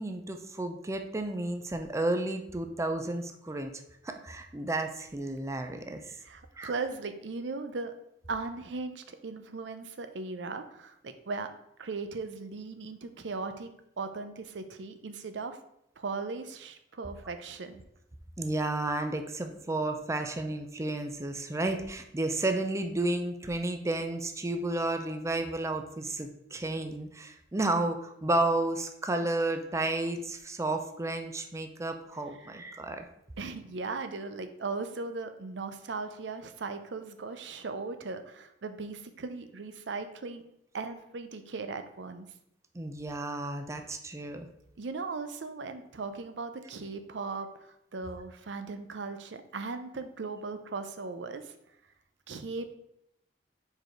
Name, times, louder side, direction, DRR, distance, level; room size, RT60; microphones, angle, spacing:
voice 1, 0.0-3.7 4.0-6.2 6.6-6.7 18.4-33.0 42.7-44.5, right 2 dB, 15° right, 6 dB, 0.5 m, -32 dB
voice 2, 6.2-7.9 8.3-11.5 11.8-13.7 14.0-15.6 16.0-17.8 33.4-40.4 40.7-42.3 44.8-51.5 52.3-52.8, right 4 dB, 75° right, 9 dB, 0.6 m, -38 dB
4.8 x 4.8 x 4.4 m, 0.78 s
head